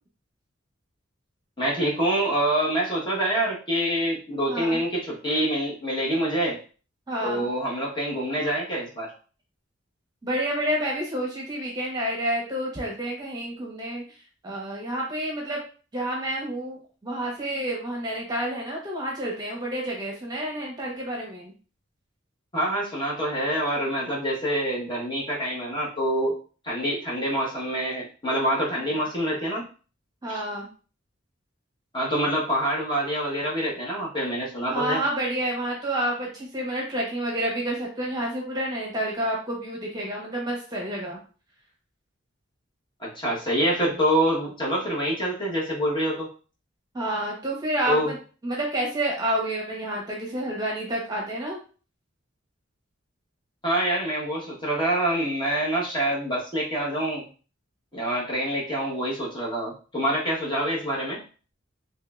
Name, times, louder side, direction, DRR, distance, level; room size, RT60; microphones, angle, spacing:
voice 1, 1.6-6.6 7.2-9.1 22.5-26.4 26.6-29.7 30.3-30.4 31.9-35.0 43.0-46.3 47.9-48.1 53.6-57.2 57.9-61.2, right 1 dB, 25° left, -4 dB, 1.2 m, -26 dB
voice 2, 4.5-4.8 7.1-7.5 10.2-14.0 14.4-15.6 15.9-21.5 30.2-30.7 34.7-41.2 46.9-48.2 48.4-51.6, right 1 dB, 20° right, -2 dB, 1.0 m, -29 dB
3.6 x 3.2 x 2.4 m, 0.37 s
head